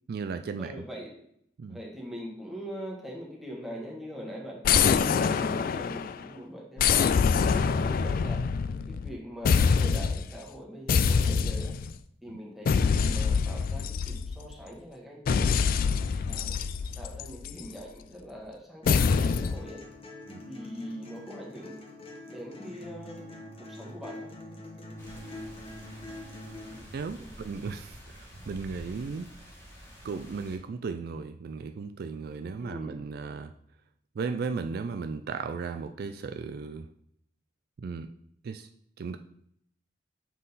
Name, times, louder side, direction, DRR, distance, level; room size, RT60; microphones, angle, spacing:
voice 1, 0.1-0.8 1.6-1.8 12.3-12.4 20.3-20.4 26.9-29.3 30.0-33.5 34.2-36.9 37.8-38.1 38.4-38.7 39.0-39.2, right 4 dB, 60° right, 9 dB, 0.3 m, -35 dB
voice 2, 0.6-1.1 1.7-8.4 8.9-11.7 12.2-15.5 16.2-16.6 17.0-19.8 20.4-22.0 22.3-23.2 23.6-24.3 27.1-27.3 32.6-33.0, equal, ahead, -3 dB, 1.5 m, -42 dB
sound 1, 4.6-6.2 6.8-9.1 9.5-10.3 10.9-11.9 12.7-14.5 15.3-17.7 18.9-19.6, left 6 dB, 55° left, 0.3 m, -25 dB
sound 2, 18.8-26.8, left 1 dB, 30° left, 1.1 m, -44 dB
sound 3, 25.0-30.6, equal, 15° left, 1.6 m, -48 dB
7.4 x 3.7 x 4.0 m, 0.70 s
head